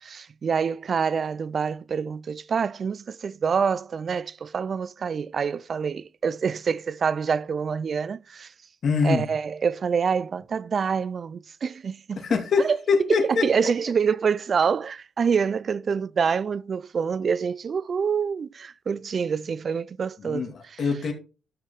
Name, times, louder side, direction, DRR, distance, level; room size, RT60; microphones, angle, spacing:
voice 1, 0.0-8.5 9.0-12.3 12.6-12.8 13.1-20.5, right 6 dB, 45° right, 0.4 m, -26 dB
voice 2, 8.8-9.3 12.2-13.4 20.2-21.1, left 5 dB, 55° left, 2.4 m, -24 dB
12.0 x 6.6 x 3.4 m
cardioid pair, 90°, 0 cm